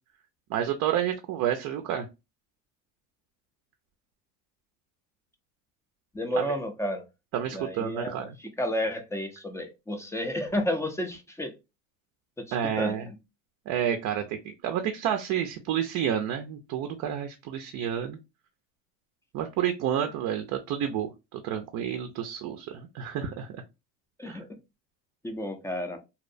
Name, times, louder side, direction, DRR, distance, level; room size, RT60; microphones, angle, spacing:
voice 1, 0.5-2.1 6.4-6.5 7.3-8.3 12.5-13.1 13.7-18.2 19.3-23.6 24.3-24.4, right 9 dB, 50° right, 0.5 m, -30 dB
voice 2, 6.1-7.1 7.5-11.6 12.4-13.2 24.2-24.5 25.2-26.0, equal, 10° left, 0.4 m, -31 dB
2.7 x 2.0 x 2.4 m
supercardioid pair, 115°, 37 cm